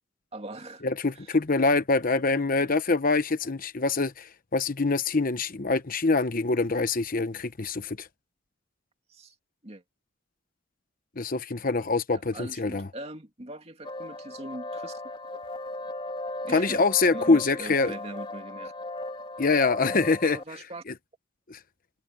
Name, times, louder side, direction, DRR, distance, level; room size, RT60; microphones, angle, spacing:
voice 1, 0.3-0.8 1.1-1.4 7.6-7.7 9.1-9.3 9.6-9.8 12.1-15.0 15.3-15.4 16.4-16.8 17.1-18.7 20.0-20.8, right 1 dB, 30° right, 2.4 m, -41 dB
voice 2, 0.8-8.1 11.2-12.9 16.5-17.9 19.4-20.4 20.9-21.0 21.5-21.6, left 3 dB, 45° left, 1.0 m, -25 dB
sound 1, 13.8-20.4, left 2 dB, 25° left, 2.4 m, -37 dB
head